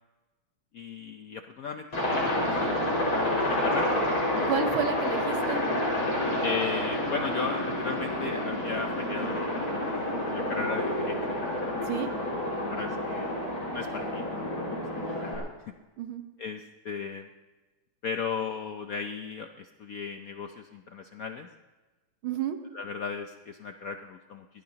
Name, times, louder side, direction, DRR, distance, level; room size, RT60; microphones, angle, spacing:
voice 1, 0.7-1.9 2.1-4.0 4.3-4.5 6.4-9.8 10.3-11.4 11.8-11.9 12.7-13.3 13.7-15.5 16.4-17.3 18.0-21.5 22.7-24.6, left 5 dB, 65° left, 6 dB, 0.8 m, -36 dB
Aircraft, 1.9-15.4, left 1 dB, 85° left, 5.8 m, -29 dB
voice 2, 4.5-5.6 11.8-12.1 16.0-16.2 22.2-22.6, right 7 dB, 75° right, 7 dB, 2.0 m, -30 dB
21.5 x 18.0 x 2.9 m, 1.2 s
omnidirectional pair, 2.3 m